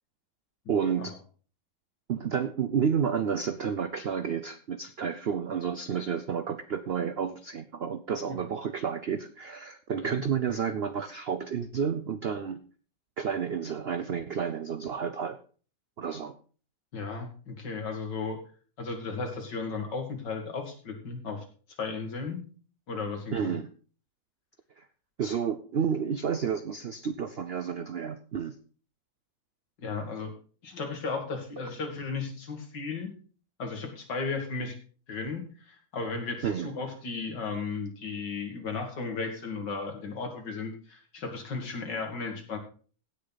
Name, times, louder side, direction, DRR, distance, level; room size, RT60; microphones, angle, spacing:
voice 1, 0.7-1.1 2.1-12.6 13.2-15.4 16.0-16.4 23.3-23.7 24.8-24.9 25.2-28.6 36.4-36.7, right 7 dB, 75° right, 11 dB, 0.5 m, -30 dB
voice 2, 16.9-18.4 18.8-21.4 21.8-22.4 22.9-23.5 29.8-30.3 30.6-33.1 33.6-34.7 35.1-42.6, left 4 dB, 80° left, 4 dB, 2.7 m, -35 dB
16.5 x 6.7 x 4.0 m, 0.41 s
omnidirectional pair, 1.9 m